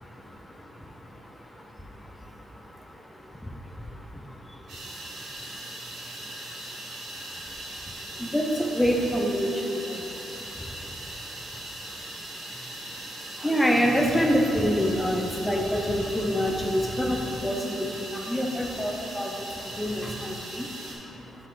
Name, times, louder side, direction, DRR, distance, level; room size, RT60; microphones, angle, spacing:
voice 1, 0.2-21.5, equal, 5° left, 1 dB, 0.6 m, -29 dB
sound 1, 4.7-20.9, right 1 dB, 75° right, 1.6 m, -40 dB
7.4 x 6.0 x 3.8 m, 3.0 s
cardioid pair, 175°, 0 cm